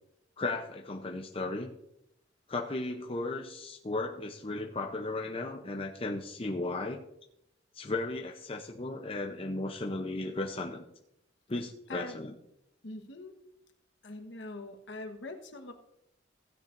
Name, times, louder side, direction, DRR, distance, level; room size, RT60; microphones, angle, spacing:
voice 1, 0.4-1.7 2.5-7.0 7.7-10.8 11.5-12.3, left 2 dB, 30° left, 1 dB, 0.7 m, -35 dB
voice 2, 12.8-13.3 14.0-15.7, left 2 dB, 65° left, 5 dB, 1.3 m, -43 dB
15.5 x 9.5 x 2.6 m, 0.80 s
head